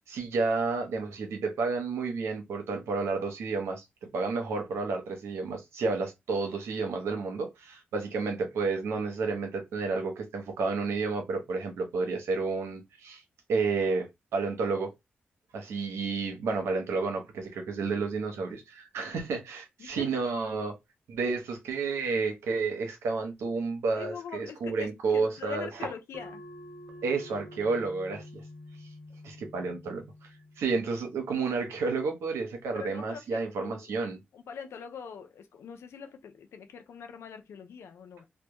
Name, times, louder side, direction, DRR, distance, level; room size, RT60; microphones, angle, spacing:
voice 1, 0.1-3.8 4.1-13.2 13.5-14.9 15.5-20.8 21.1-25.9 27.0-28.4 29.2-34.2, right 4 dB, 85° right, 0.7 m, -31 dB
voice 2, 24.0-26.4 32.7-33.9 34.3-38.3, left 6 dB, 80° left, 0.4 m, -43 dB
sound 1, 26.1-31.2, left 1 dB, 25° right, 0.6 m, -48 dB
2.2 x 2.0 x 2.8 m
supercardioid pair, 45°, 4 cm